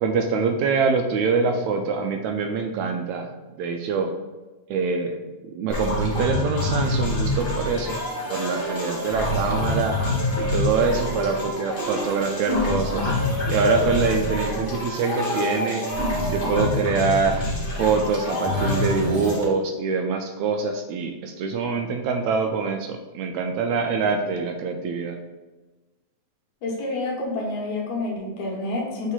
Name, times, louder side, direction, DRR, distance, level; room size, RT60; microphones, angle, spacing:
voice 1, 0.0-3.3 3.6-4.1 4.7-5.2 5.5-8.0 8.3-10.1 10.4-15.9 16.3-17.4 17.8-25.2, right 4 dB, 80° right, 5 dB, 1.8 m, -24 dB
sound 1, 5.7-19.4, left 1 dB, 40° left, 0.7 m, -26 dB
voice 2, 26.6-29.1, left 2 dB, 70° left, -3 dB, 2.5 m, -28 dB
7.2 x 3.6 x 3.9 m, 1.2 s
omnidirectional pair, 3.5 m